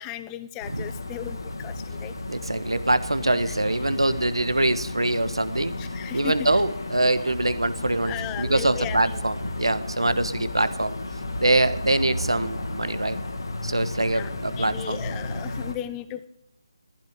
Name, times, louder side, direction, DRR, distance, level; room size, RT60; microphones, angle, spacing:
voice 1, 0.0-2.1 3.5-3.6 5.8-6.3 8.1-9.2 14.1-16.3, left 12 dB, 15° left, 13 dB, 0.6 m, -36 dB
sound 1, 0.6-15.7, left 2 dB, 60° left, 2.0 m, -33 dB
voice 2, 2.3-5.8 6.1-11.0 11.4-13.2 13.6-15.0, right 2 dB, 80° right, 13 dB, 1.3 m, -24 dB
15.0 x 14.5 x 5.2 m, 0.80 s
figure-of-eight pair, 155°, 3 cm